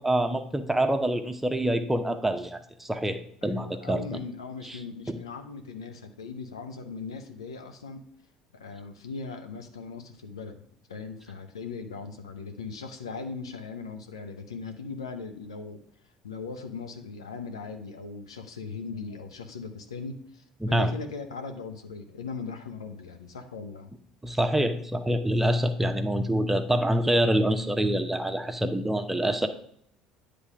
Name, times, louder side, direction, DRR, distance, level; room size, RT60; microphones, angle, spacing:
voice 1, 0.0-4.0 4.7-4.8 5.1-5.2 20.6-20.9 24.2-29.5, right 1 dB, 10° right, 7 dB, 0.8 m, -26 dB
voice 2, 3.4-8.0 8.5-10.6 10.9-15.8 16.2-23.9, left 4 dB, 80° left, 6 dB, 0.7 m, -39 dB
9.6 x 3.4 x 4.9 m, 0.67 s
figure-of-eight pair, 60°, 3 cm